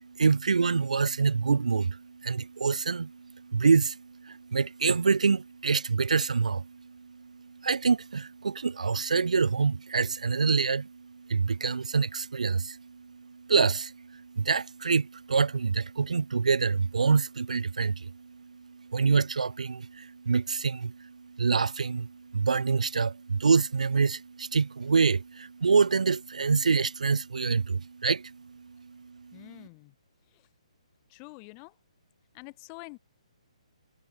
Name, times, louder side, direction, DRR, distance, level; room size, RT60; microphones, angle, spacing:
voice 1, 0.0-29.4, right 5 dB, 85° right, 0.8 m, -26 dB
voice 2, 29.3-30.0 30.3-30.5 31.1-31.8 32.3-33.0, left 40 dB or more, 25° left, 3.7 m, -47 dB
hypercardioid pair, 155°, 4 cm